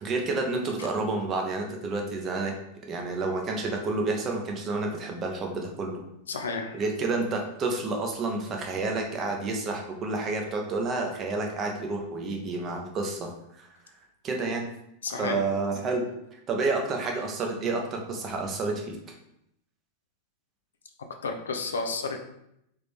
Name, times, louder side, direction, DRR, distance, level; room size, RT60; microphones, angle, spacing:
voice 1, 0.0-2.5 2.9-6.0 6.7-13.3 13.6-13.7 14.2-14.7 15.1-16.0 16.3-19.0, right 3 dB, 30° right, 2 dB, 0.8 m, -29 dB
voice 2, 6.3-6.8 15.0-15.5 21.2-22.2, left 4 dB, 65° left, 5 dB, 0.6 m, -31 dB
3.9 x 3.5 x 3.4 m, 0.79 s
figure-of-eight pair, 90°, 0 cm